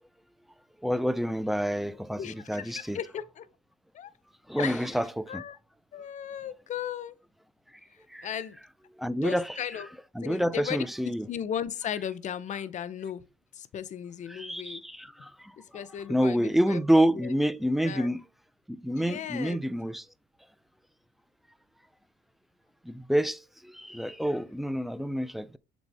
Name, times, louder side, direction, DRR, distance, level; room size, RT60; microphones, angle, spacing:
voice 1, 0.8-3.0 4.5-5.4 8.1-8.3 9.0-9.6 10.2-11.3 14.3-15.5 16.1-18.2 18.7-20.0 22.8-25.6, equal, ahead, 0.4 m, -28 dB
voice 2, 1.9-3.5 3.9-4.1 4.5-5.0 5.3-5.6 5.9-7.2 8.2-8.6 9.1-9.9 10.2-13.2 13.5-14.8 15.2-15.3 15.7-16.8 17.1-17.3 17.8-18.1 18.9-19.6, left 9 dB, 45° left, 0.6 m, -36 dB
7.0 x 4.0 x 3.4 m
cardioid pair, 110°, 17 cm